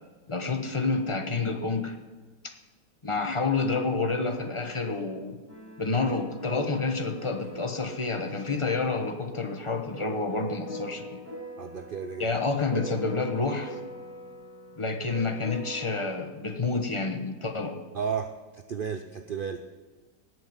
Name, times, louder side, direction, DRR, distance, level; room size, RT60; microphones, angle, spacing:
voice 1, 0.3-1.9 3.0-5.4 5.8-11.2 12.2-13.8 14.8-17.8, left 3 dB, 20° left, 5 dB, 0.9 m, -29 dB
sound 1, 5.5-16.1, equal, 5° right, 4.8 m, -42 dB
voice 2, 11.6-12.3 17.9-19.7, right 6 dB, 80° right, 7 dB, 0.4 m, -33 dB
17.5 x 6.2 x 9.1 m, 1.3 s
omnidirectional pair, 1.8 m